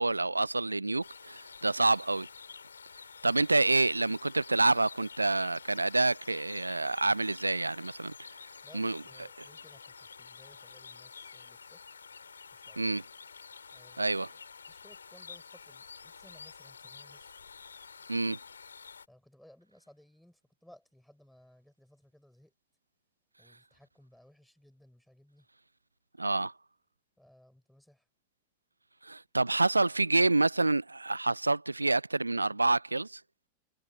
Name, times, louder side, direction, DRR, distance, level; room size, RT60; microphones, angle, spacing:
voice 1, 0.0-2.3 3.2-8.1 8.7-9.0 12.8-13.0 14.0-14.3 18.1-18.4 26.2-26.5 29.0-33.2, right 2 dB, 80° right, 0.4 m, -27 dB
sound 1, 1.0-19.1, left 5 dB, 75° left, 2.8 m, -49 dB
voice 2, 8.6-11.8 12.5-13.0 13.7-14.4 14.7-17.4 19.1-22.5 23.4-25.5 27.2-28.1, left 1 dB, ahead, 7.1 m, -60 dB
figure-of-eight pair, 90°, 0 cm